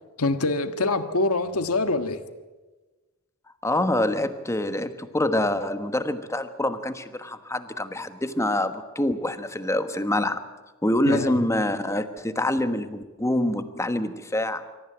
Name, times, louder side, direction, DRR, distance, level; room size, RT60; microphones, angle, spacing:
voice 1, 0.2-2.2 11.0-11.4, left 2 dB, 80° left, 8 dB, 1.6 m, -25 dB
voice 2, 3.6-10.4 10.8-14.6, left 1 dB, 15° left, 9 dB, 1.3 m, -26 dB
25.0 x 14.5 x 8.9 m, 1.2 s
head